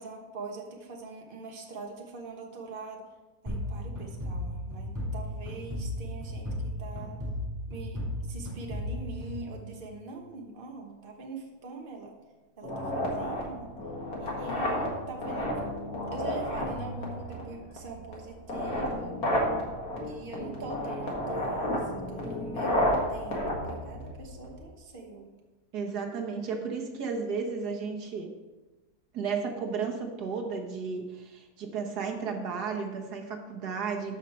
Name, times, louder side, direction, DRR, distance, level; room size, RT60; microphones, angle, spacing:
voice 1, 0.0-3.0 3.4-7.2 7.7-12.1 12.6-13.7 14.2-15.7 16.1-19.2 20.0-22.8 23.1-25.3, right 3 dB, 35° right, 1 dB, 1.3 m, -43 dB
sound 1, 3.5-10.1, left 1 dB, 10° right, 2.6 m, -35 dB
sound 2, 12.6-24.6, left 1 dB, 65° left, 2.4 m, -32 dB
voice 2, 25.7-28.3 29.1-34.2, right 5 dB, 80° right, 2 dB, 1.7 m, -33 dB
13.0 x 5.3 x 4.3 m, 1.2 s
omnidirectional pair, 1.7 m